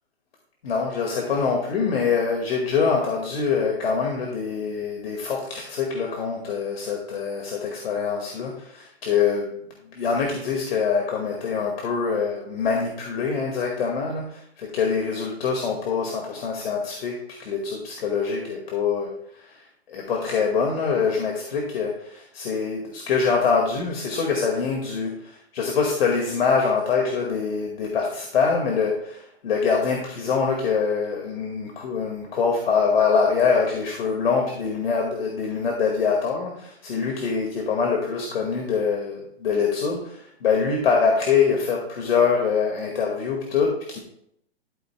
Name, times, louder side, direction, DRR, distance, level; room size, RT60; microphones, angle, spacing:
voice 1, 0.6-9.6 9.9-44.0, left 5 dB, 70° left, 0 dB, 2.0 m, -24 dB
12.5 x 7.9 x 2.2 m, 0.72 s
hypercardioid pair, 145°, 31 cm